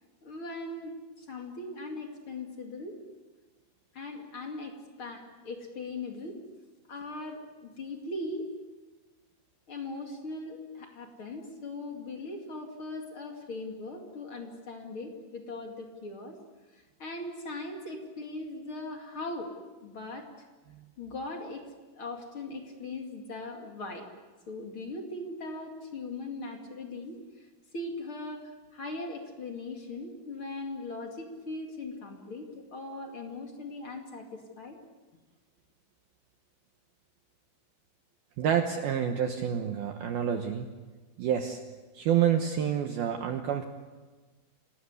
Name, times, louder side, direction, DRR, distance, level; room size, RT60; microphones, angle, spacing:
voice 1, 0.2-0.9 1.2-3.0 3.9-6.4 6.9-8.5 9.7-16.3 16.7-19.5 19.8-20.3 21.0-21.6 21.9-24.1 24.5-27.5 27.7-34.8, left 2 dB, 40° left, 2 dB, 1.9 m, -39 dB
voice 2, 38.4-40.7 41.2-41.6 41.9-43.6, right 9 dB, 85° right, 5 dB, 2.1 m, -28 dB
27.5 x 19.0 x 8.3 m, 1.3 s
omnidirectional pair, 6.0 m